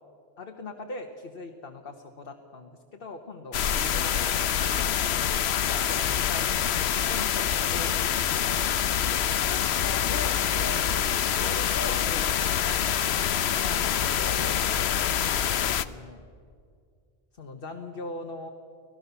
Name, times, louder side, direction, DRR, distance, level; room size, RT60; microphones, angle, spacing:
voice 1, 0.4-4.8 5.1-6.4 7.0-8.6 9.1-10.8 11.3-12.8 13.0-14.5 15.1-16.2 17.4-18.5, left 3 dB, 60° left, 3 dB, 1.5 m, -41 dB
sound 1, 3.5-15.8, left 9 dB, 85° left, 1.0 m, -26 dB
25.5 x 17.5 x 7.0 m, 2.2 s
omnidirectional pair, 1.1 m